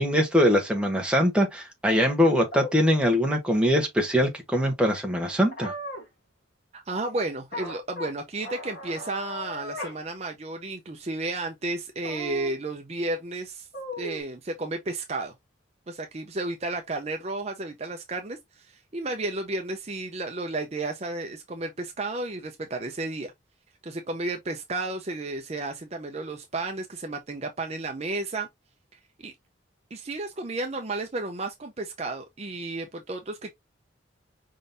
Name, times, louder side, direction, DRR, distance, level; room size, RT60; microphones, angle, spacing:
voice 1, 0.0-5.7, equal, 5° right, 1.0 m, -22 dB
sound 1, 2.5-2.7 5.5-6.1 7.5-8.1 8.4-10.0 10.3-10.4 12.0-12.6 13.7-14.2, left 1 dB, 50° left, 2.1 m, -36 dB
voice 2, 6.7-13.7 14.0-15.3 15.9-23.3 23.8-28.5 29.2-29.3 29.9-33.5, right 2 dB, 30° right, 0.6 m, -32 dB
5.2 x 3.8 x 2.6 m
head